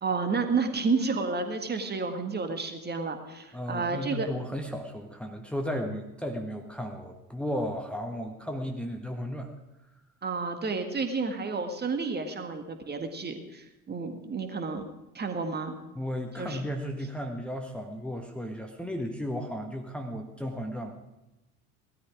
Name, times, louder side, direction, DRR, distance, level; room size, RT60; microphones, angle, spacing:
voice 1, 0.0-4.3 10.2-14.8 15.1-15.8 16.4-16.6, right 4 dB, 20° right, 6 dB, 1.8 m, -31 dB
voice 2, 3.5-9.5 15.9-20.9, equal, ahead, 2 dB, 1.5 m, -34 dB
17.5 x 13.0 x 5.0 m, 0.98 s
figure-of-eight pair, 65°, 44 cm